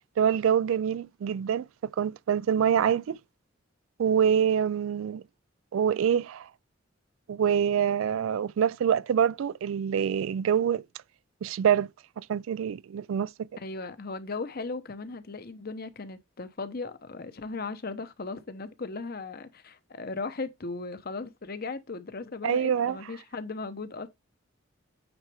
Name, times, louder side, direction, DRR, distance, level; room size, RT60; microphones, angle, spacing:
voice 1, 0.2-3.2 4.0-5.2 5.7-6.5 7.3-10.8 11.4-11.9 12.2-13.5 22.4-23.0, right 8 dB, 85° right, 0.3 m, -25 dB
voice 2, 13.6-24.1, left 3 dB, 50° left, 0.9 m, -37 dB
8.9 x 4.3 x 3.4 m
head